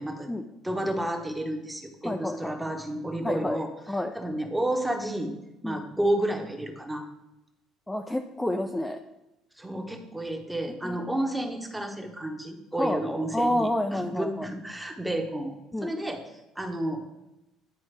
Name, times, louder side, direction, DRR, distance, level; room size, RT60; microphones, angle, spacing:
voice 1, 0.6-3.7 4.1-5.3 5.6-7.0 9.6-15.5 15.8-16.2 16.6-17.1, right 1 dB, 10° right, 4 dB, 1.1 m, -31 dB
voice 2, 2.0-2.6 3.2-3.6 3.9-4.1 5.6-5.8 7.9-9.0 10.8-11.0 12.8-13.0 13.3-14.5 15.7-15.9, left 1 dB, 10° left, 4 dB, 0.5 m, -29 dB
10.5 x 4.2 x 3.3 m, 0.94 s
supercardioid pair, 90°, 0 cm